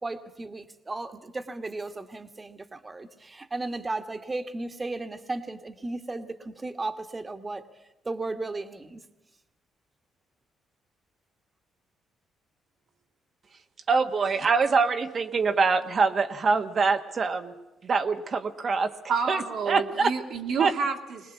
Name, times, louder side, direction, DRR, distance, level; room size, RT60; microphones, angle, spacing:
voice 1, 0.0-7.6 8.0-9.0, right 2 dB, 25° right, 8 dB, 1.6 m, -35 dB
voice 2, 13.9-17.5 17.8-18.9 19.3-20.1 20.6-20.7, right 4 dB, 45° right, 7 dB, 1.3 m, -24 dB
voice 3, 19.1-21.3, right 5 dB, 70° right, 3 dB, 2.2 m, -29 dB
21.5 x 19.5 x 8.3 m, 1.0 s
cardioid pair, 90°, 0 cm